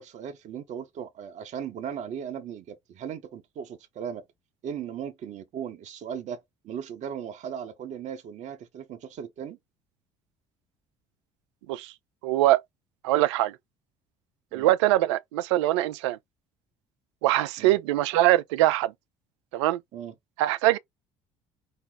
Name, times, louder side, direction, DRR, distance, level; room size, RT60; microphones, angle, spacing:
voice 1, 0.0-4.2 4.6-9.6 14.5-14.7 17.6-17.7 19.9-20.1, right 8 dB, 50° right, 0.9 m, -37 dB
voice 2, 12.2-12.6 13.0-13.6 14.5-16.2 17.2-18.9 19.5-19.8 20.4-20.8, right 15 dB, 70° right, 0.4 m, -22 dB
5.3 x 2.0 x 3.9 m
figure-of-eight pair, 55°, 15 cm